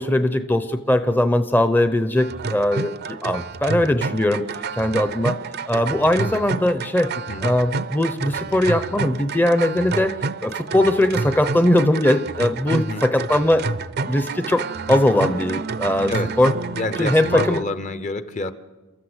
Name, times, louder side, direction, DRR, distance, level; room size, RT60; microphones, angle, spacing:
voice 1, 0.0-4.4 4.8-5.4 5.7-7.1 7.4-13.7 14.0-16.5 17.0-17.6, left 1 dB, 10° left, 9 dB, 0.7 m, -20 dB
sound 1, 2.2-17.6, right 4 dB, 50° right, 0.6 m, -29 dB
voice 2, 12.7-13.0 16.1-16.3 16.7-18.5, left 2 dB, 35° left, 12 dB, 0.9 m, -27 dB
29.5 x 14.0 x 8.0 m, 1.2 s
head